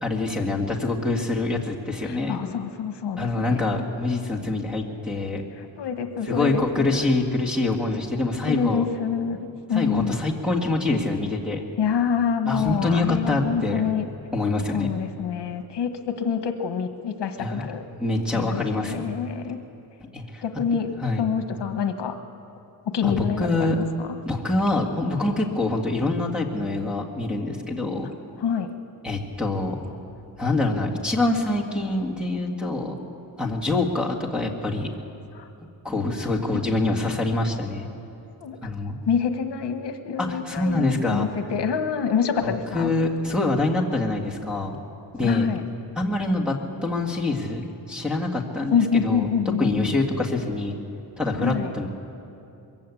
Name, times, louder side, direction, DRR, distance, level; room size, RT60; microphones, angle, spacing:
voice 1, 0.0-2.4 3.2-5.4 6.3-8.8 9.7-11.6 12.5-13.9 14.3-14.9 17.4-17.7 18.0-19.0 20.1-20.4 21.0-21.3 23.0-23.8 24.3-28.1 29.0-29.8 30.4-33.0 33.4-34.9 35.8-37.9 38.6-39.0 40.2-41.3 42.4-44.8 45.1-45.5 46.0-46.5 46.8-49.3 49.6-50.8 51.2-51.9, left 2 dB, ahead, 1 dB, 1.9 m, -25 dB
voice 2, 2.0-3.9 5.6-7.1 8.4-9.4 9.7-10.2 11.8-14.1 14.7-17.8 18.3-19.6 20.4-22.2 22.9-24.1 28.4-28.7 35.3-35.5 36.5-36.6 38.4-38.6 39.1-42.9 45.2-45.6 48.7-49.9 51.4-51.7, left 7 dB, 75° left, 7 dB, 1.3 m, -26 dB
22.5 x 15.5 x 8.5 m, 2.8 s
wide cardioid pair, 165°, 42 cm